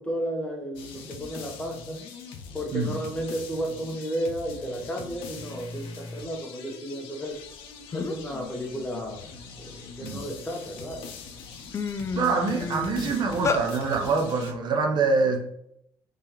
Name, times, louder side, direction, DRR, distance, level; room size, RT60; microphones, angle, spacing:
voice 1, 0.0-2.0 2.5-7.4 7.9-9.2 9.5-11.1, equal, 10° left, 0.9 m, -33 dB
sound 1, 0.7-14.5, left 5 dB, 80° left, 0.5 m, -42 dB
sound 2, 7.6-7.7 7.9-8.3 8.8-10.3 10.9-11.1 11.4-13.6, left 5 dB, 30° left, 0.4 m, -31 dB
voice 2, 12.1-15.4, right 4 dB, 55° right, 0.6 m, -25 dB
3.5 x 3.3 x 2.9 m
supercardioid pair, 85°, 9 cm